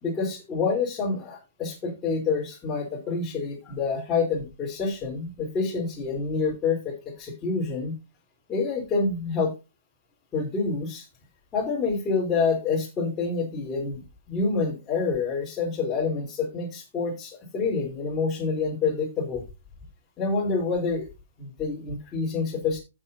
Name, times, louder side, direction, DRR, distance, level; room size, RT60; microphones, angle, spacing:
voice 1, 0.0-8.0 8.5-9.5 10.3-11.1 11.5-14.0 14.3-19.4 20.2-21.1 21.4-22.8, left 4 dB, 20° left, -3 dB, 3.6 m, -27 dB
15.0 x 6.2 x 2.7 m, 0.27 s
figure-of-eight pair, 120°, 0 cm